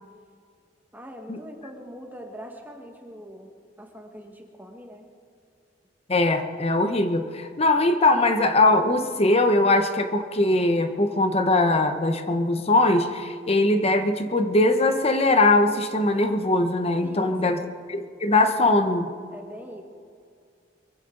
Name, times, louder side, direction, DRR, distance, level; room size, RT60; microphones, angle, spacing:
voice 1, 0.9-3.5 3.8-5.1 17.0-17.8 19.3-19.8, equal, 10° right, 1 dB, 1.5 m, -42 dB
voice 2, 6.1-17.6 17.9-19.1, left 2 dB, 35° left, 8 dB, 0.9 m, -21 dB
23.0 x 15.5 x 3.9 m, 2.2 s
head